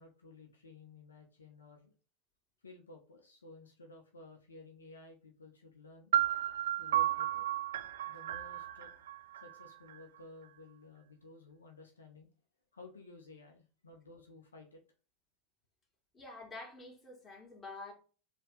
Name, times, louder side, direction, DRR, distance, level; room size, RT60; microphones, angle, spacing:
voice 1, 0.0-1.9 2.6-6.1 6.8-7.5 8.1-8.9 9.4-12.3 12.7-14.8, left 2 dB, 90° left, 0.8 m, -54 dB
sound 1, 6.1-10.0, right 12 dB, 75° right, 0.4 m, -33 dB
voice 2, 16.1-17.9, left 3 dB, 25° left, 2.5 m, -48 dB
4.1 x 2.9 x 3.8 m
hypercardioid pair, 85°, 0 cm